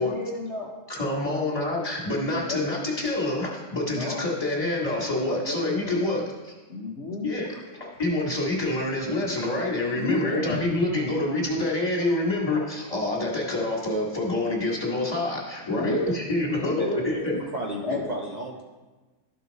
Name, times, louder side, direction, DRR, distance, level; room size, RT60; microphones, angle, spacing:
voice 1, 0.0-0.7 2.3-2.6 3.9-4.2 5.2-6.1 6.7-7.3 9.9-11.0 15.7-16.1 16.5-17.0 17.8-18.0, left 2 dB, 50° left, -3 dB, 1.0 m, -31 dB
voice 2, 0.9-6.5 7.2-7.5 7.8-17.4, left 2 dB, 20° left, -4 dB, 1.9 m, -27 dB
voice 3, 17.3-18.6, right 1 dB, 60° right, -2 dB, 0.4 m, -33 dB
13.0 x 4.5 x 4.0 m, 1.2 s
omnidirectional pair, 2.0 m